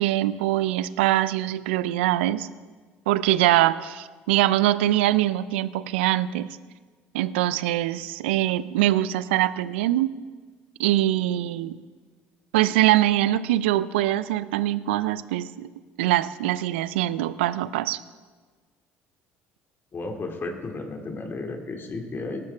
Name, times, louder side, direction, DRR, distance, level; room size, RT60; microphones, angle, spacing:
voice 1, 0.0-2.5 3.1-6.6 7.1-10.2 10.8-11.8 12.5-15.7 16.0-18.0, right 14 dB, 80° right, 17 dB, 0.5 m, -23 dB
voice 2, 19.9-22.4, left 3 dB, 40° left, 3 dB, 2.5 m, -33 dB
18.5 x 13.5 x 3.6 m, 1.4 s
hypercardioid pair, 60°, 6 cm